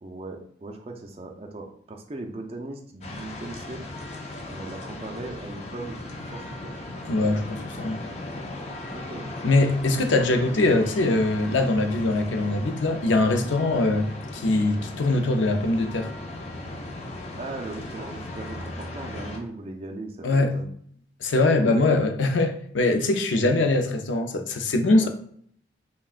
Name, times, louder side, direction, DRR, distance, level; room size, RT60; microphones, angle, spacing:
voice 1, 0.0-3.8 4.5-6.9 8.9-9.5 17.4-20.7 25.0-25.1, right 2 dB, 30° right, 0.4 m, -38 dB
sound 1, 3.0-19.4, left 2 dB, 35° left, 0.5 m, -37 dB
voice 2, 7.1-8.0 9.4-14.1 14.3-16.1 20.2-20.5 21.2-25.1, left 2 dB, 90° left, 0.5 m, -22 dB
5.7 x 2.2 x 2.4 m
head